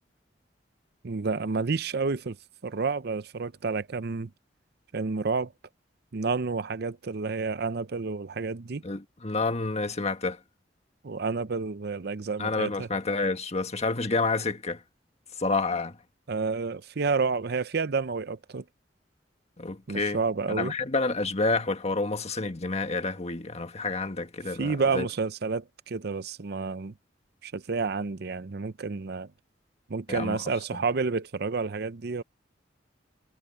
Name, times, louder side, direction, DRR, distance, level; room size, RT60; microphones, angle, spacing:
voice 1, 1.0-2.4 2.6-4.3 4.9-5.5 6.1-8.8 11.0-12.9 16.3-18.6 19.9-20.7 24.6-26.9 27.4-29.3 29.9-32.2, right 4 dB, 60° right, 0.7 m, -30 dB
voice 2, 8.8-10.4 12.4-14.8 15.4-16.0 19.6-20.2 20.5-25.1 30.1-30.4 30.7-30.8, left 3 dB, 35° left, 1.5 m, -29 dB
head